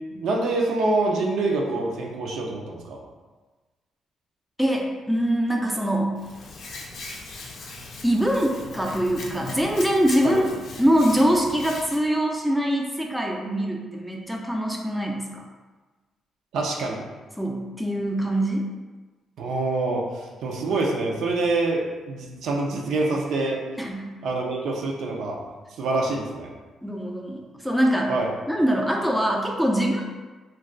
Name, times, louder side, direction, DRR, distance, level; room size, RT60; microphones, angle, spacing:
voice 1, 0.1-3.0 10.2-10.4 16.5-17.0 19.4-23.6 24.2-25.4 25.8-26.5 28.1-28.3, right 2 dB, 75° right, 0 dB, 0.5 m, -26 dB
voice 2, 4.6-6.2 8.0-15.4 17.4-18.6 23.8-24.1 26.8-28.1 28.5-30.1, equal, ahead, 0 dB, 0.4 m, -23 dB
Hands, 6.2-12.0, left 2 dB, 65° left, 0.5 m, -39 dB
2.3 x 2.3 x 3.7 m, 1.3 s
cardioid pair, 90°, 0 cm